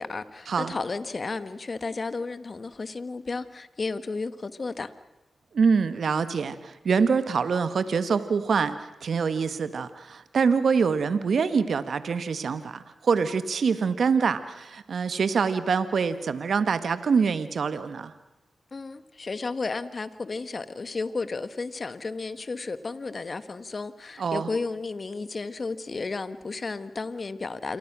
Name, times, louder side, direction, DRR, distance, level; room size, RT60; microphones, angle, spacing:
voice 1, 0.0-4.9 18.7-27.8, left 3 dB, 50° left, 13 dB, 1.7 m, -33 dB
voice 2, 5.5-8.8 9.0-18.1 24.2-24.5, right 5 dB, 75° right, 12 dB, 1.5 m, -25 dB
28.0 x 23.0 x 6.2 m, 1.0 s
supercardioid pair, 40°, 0 cm